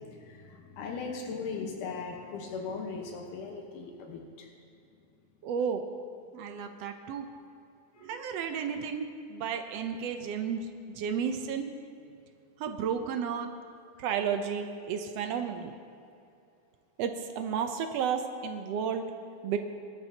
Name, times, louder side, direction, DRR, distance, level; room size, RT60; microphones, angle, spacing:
voice 1, 0.0-4.5 7.9-8.2, left 4 dB, 85° left, 1 dB, 2.6 m, -39 dB
voice 2, 5.4-5.8 6.3-7.3 8.0-11.7 12.6-13.5 14.0-15.7 17.0-19.0 19.4-19.6, right 7 dB, 80° right, 6 dB, 1.4 m, -32 dB
22.0 x 12.0 x 2.8 m, 2.5 s
omnidirectional pair, 3.6 m